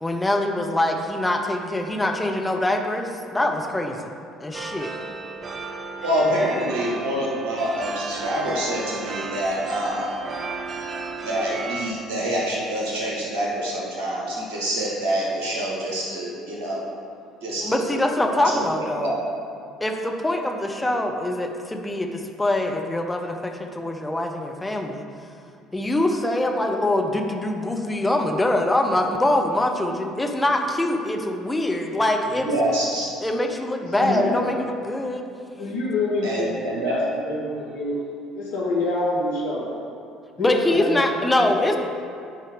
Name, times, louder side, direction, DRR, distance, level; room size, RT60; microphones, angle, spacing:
voice 1, 0.0-4.1 4.4-4.9 17.6-19.2 19.8-25.0 25.7-32.5 33.2-35.2 40.4-41.8, left 1 dB, 15° left, 3 dB, 1.0 m, -24 dB
sound 1, 4.5-11.9, right 4 dB, 40° right, 0.7 m, -34 dB
voice 2, 6.0-10.1 11.2-16.8 17.4-19.2 32.3-33.1 34.1-34.4 36.2-36.9, equal, 65° right, -4 dB, 1.7 m, -26 dB
voice 3, 34.0-34.4 35.6-37.0 37.2-38.0 38.3-39.8 40.4-41.0 41.3-41.8, left 2 dB, 70° left, -5 dB, 1.7 m, -27 dB
10.0 x 4.6 x 5.1 m, 2.4 s
figure-of-eight pair, 55°, 0 cm